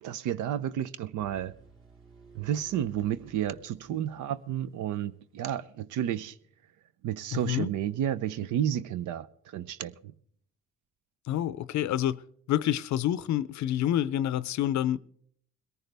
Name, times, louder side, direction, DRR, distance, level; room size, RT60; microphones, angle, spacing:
voice 1, 0.0-1.5 2.3-6.3 7.0-9.3 9.5-10.1, right 10 dB, 85° right, 0.6 m, -31 dB
sound 1, 1.2-5.1, right 4 dB, 45° right, 3.3 m, -55 dB
voice 2, 7.3-7.7 11.3-12.2 12.5-15.0, left 12 dB, 70° left, 0.5 m, -28 dB
21.0 x 14.5 x 3.4 m
cardioid pair, 90°, 30 cm